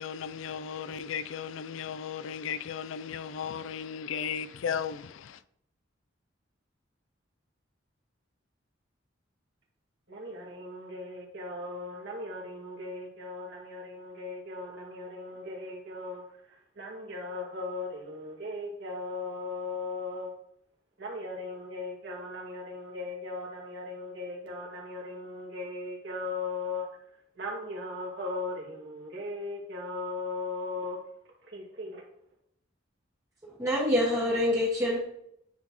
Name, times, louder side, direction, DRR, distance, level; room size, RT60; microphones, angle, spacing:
voice 1, 0.0-5.4, left 7 dB, 85° left, 0.4 m, -35 dB
voice 2, 10.1-20.3 21.0-26.9 27.4-31.0 31.4-32.0, left 2 dB, 60° right, 2.0 m, -38 dB
voice 3, 33.4-35.0, left 1 dB, 15° right, 1.5 m, -26 dB
9.4 x 4.3 x 3.0 m
head